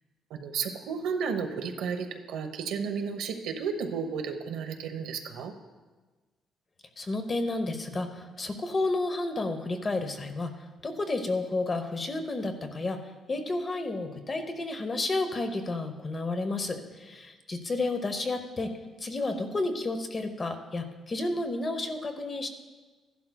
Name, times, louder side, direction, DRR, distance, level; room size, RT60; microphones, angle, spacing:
voice 1, 0.3-5.5, right 6 dB, 90° right, 6 dB, 1.0 m, -33 dB
voice 2, 7.0-10.5 10.8-22.5, left 2 dB, 25° left, 7 dB, 0.8 m, -31 dB
15.5 x 11.5 x 2.3 m, 1.3 s
cardioid pair, 170°, 0 cm